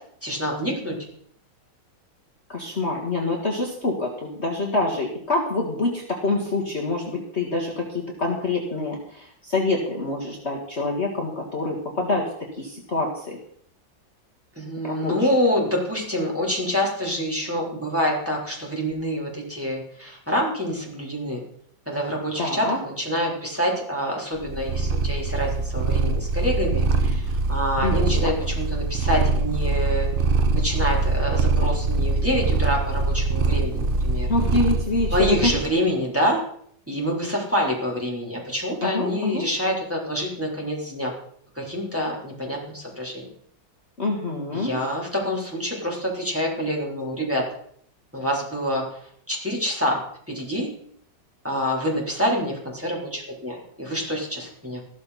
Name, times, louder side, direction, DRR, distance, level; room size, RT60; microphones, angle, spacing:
voice 1, 0.2-1.0 14.6-21.4 21.9-30.1 30.5-34.3 35.1-36.4 36.9-41.1 41.5-43.3 44.5-47.4 48.1-49.0 49.3-50.0 50.3-50.7 51.4-54.8, equal, 5° right, -3 dB, 3.5 m, -26 dB
voice 2, 2.5-12.3 12.6-13.4 14.8-15.3 22.4-22.8 27.8-28.3 34.3-35.5 38.8-39.4 44.0-44.7, left 2 dB, 35° left, -1 dB, 2.1 m, -26 dB
Purr, 24.4-35.7, right 3 dB, 50° right, 0.7 m, -23 dB
14.0 x 13.0 x 4.2 m, 0.63 s
omnidirectional pair, 2.0 m